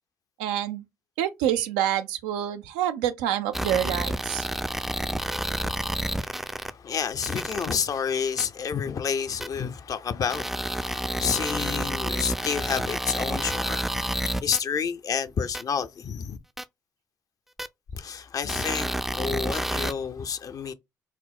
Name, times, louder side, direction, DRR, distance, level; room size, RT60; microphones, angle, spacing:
voice 1, 0.4-0.9 1.2-4.5, right 11 dB, 90° right, 0.4 m, -27 dB
sound 1, 3.5-6.7 7.2-7.7 8.4-8.5 9.4-9.5 10.3-14.6 15.5-15.6 16.6-16.7 17.6-17.7 18.5-19.9, right 1 dB, 5° right, 0.4 m, -29 dB
voice 2, 6.7-14.1 14.4-16.4 17.9-20.7, left 7 dB, 50° left, 0.5 m, -30 dB
4.3 x 2.0 x 2.3 m
hypercardioid pair, 55°, 8 cm